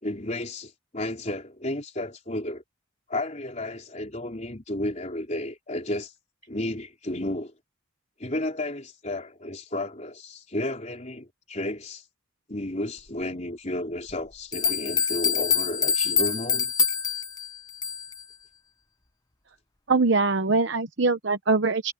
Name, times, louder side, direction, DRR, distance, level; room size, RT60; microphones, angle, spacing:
voice 1, 0.0-2.6 3.1-6.1 6.5-7.5 8.2-12.1 12.5-16.7, left 1 dB, 35° left, 4.0 m, -32 dB
sound 1, 14.1-14.2 14.5-18.2, left 7 dB, 20° left, 0.9 m, -25 dB
voice 2, 19.9-21.9, right 3 dB, 60° right, 0.9 m, -22 dB
head